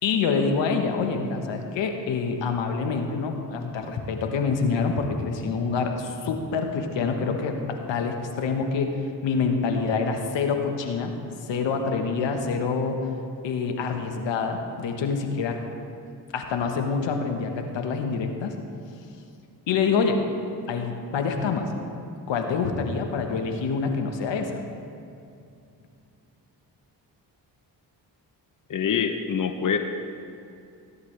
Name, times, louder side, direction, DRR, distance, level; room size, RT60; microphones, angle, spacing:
voice 1, 0.0-7.6 7.9-11.1 11.4-13.0 13.4-15.6 16.3-18.5 19.7-20.2 20.7-21.7 22.3-24.6, left 5 dB, 80° left, 4 dB, 1.3 m, -26 dB
voice 2, 28.7-29.8, left 7 dB, 45° left, 7 dB, 0.8 m, -25 dB
17.0 x 11.0 x 3.3 m, 2.5 s
cardioid pair, 65°, 44 cm